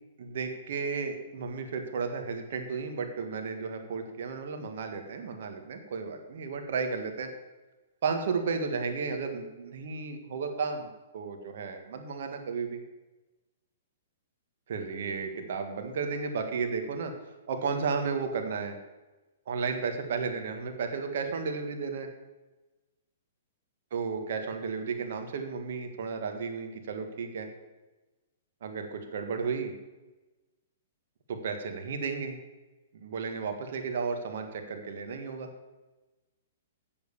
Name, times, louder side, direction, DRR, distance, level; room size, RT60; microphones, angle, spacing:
voice 1, 0.2-7.3 8.0-12.8 14.7-18.8 19.5-22.1 23.9-27.5 28.6-29.7 31.3-32.4 33.0-35.5, right 5 dB, 65° right, 5 dB, 1.6 m, -33 dB
7.7 x 7.3 x 7.0 m, 1.1 s
hypercardioid pair, 135°, 0 cm